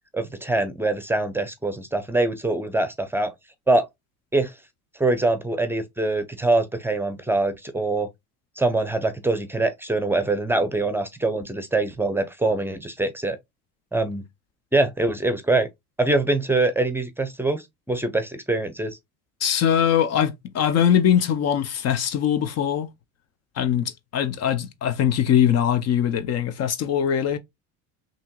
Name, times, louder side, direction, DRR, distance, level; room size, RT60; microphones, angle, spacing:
voice 1, 0.1-3.3 3.7-3.9 4.3-4.5 5.0-8.1 8.6-13.4 13.9-14.2 14.7-15.7 16.0-19.0, right 2 dB, 5° right, 0.8 m, -24 dB
voice 2, 19.4-22.9 23.6-27.4, left 9 dB, 45° left, 0.7 m, -22 dB
5.5 x 2.9 x 2.3 m
supercardioid pair, 90°, 34 cm